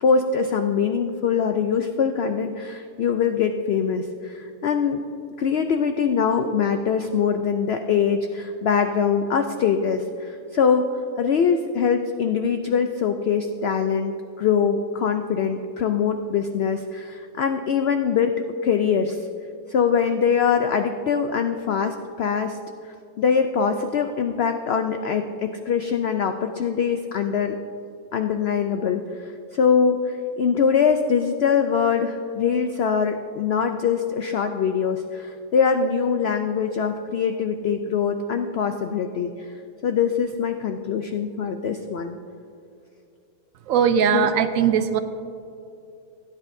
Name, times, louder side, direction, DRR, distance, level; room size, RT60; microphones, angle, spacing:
voice 1, 0.0-5.0 5.4-10.9 11.2-19.3 19.7-22.6 22.8-27.6 28.1-39.5 39.8-42.2 44.1-44.3, left 6 dB, 85° left, 7 dB, 0.5 m, -23 dB
voice 2, 43.7-45.0, right 8 dB, 65° right, 10 dB, 1.0 m, -20 dB
17.0 x 9.8 x 2.6 m, 2.6 s
omnidirectional pair, 1.6 m